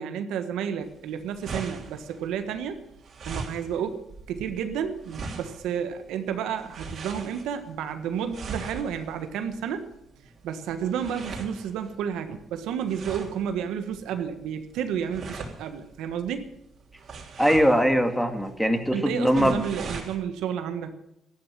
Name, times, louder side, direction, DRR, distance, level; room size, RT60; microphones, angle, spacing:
voice 1, 0.0-2.8 3.2-9.8 10.4-16.4 18.9-21.0, right 8 dB, 90° right, 8 dB, 1.4 m, -31 dB
sound 1, 0.8-20.2, right 4 dB, 55° right, 3.1 m, -41 dB
voice 2, 17.4-19.6, equal, ahead, 5 dB, 2.3 m, -21 dB
13.5 x 11.5 x 7.5 m, 0.84 s
cardioid pair, 90°, 0 cm